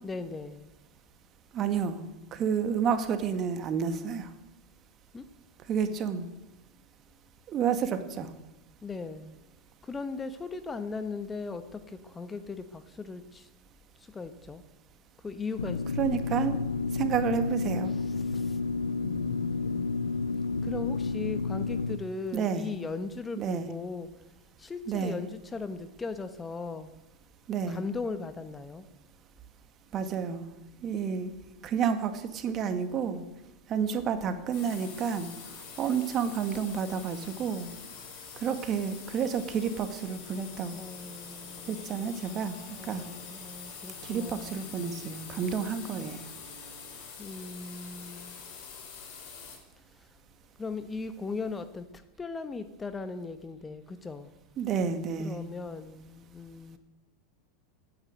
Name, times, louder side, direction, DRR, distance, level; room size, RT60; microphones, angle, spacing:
voice 1, 0.0-0.7 5.1-5.3 8.8-9.4 9.8-13.5 14.0-14.6 15.2-15.8 17.9-18.6 19.0-20.0 20.6-24.1 24.6-26.9 27.7-28.9 40.7-44.6 47.2-48.4 49.9-50.1 50.6-54.3 55.2-56.8, left 4 dB, 15° left, 11 dB, 1.2 m, -38 dB
voice 2, 1.5-2.0 2.3-4.3 5.7-6.3 7.5-8.3 16.0-16.6 16.9-17.9 22.3-22.7 23.4-23.7 24.9-25.2 27.5-27.8 29.9-30.5 30.8-31.3 31.6-33.2 33.7-35.3 35.8-37.7 38.4-40.8 41.7-42.6 42.8-43.0 44.0-46.2 54.6-55.3, right 7 dB, 35° right, 9 dB, 2.0 m, -30 dB
sound 1, 15.6-22.0, left 4 dB, 90° left, 0.6 m, -31 dB
sound 2, 34.5-49.6, left 5 dB, 55° left, 5.7 m, -45 dB
16.0 x 9.7 x 9.0 m, 0.95 s
hypercardioid pair, 95°, 0 cm